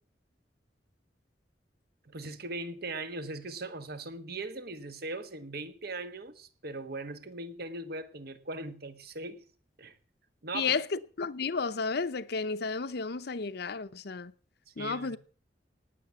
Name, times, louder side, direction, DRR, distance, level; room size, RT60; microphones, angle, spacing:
voice 1, 2.0-9.4 9.8-10.0 10.4-10.8 14.8-15.2, right 2 dB, 60° right, 1.5 m, -39 dB
voice 2, 10.5-14.3 14.8-15.2, left 5 dB, 65° left, 0.7 m, -32 dB
18.5 x 7.7 x 7.1 m
head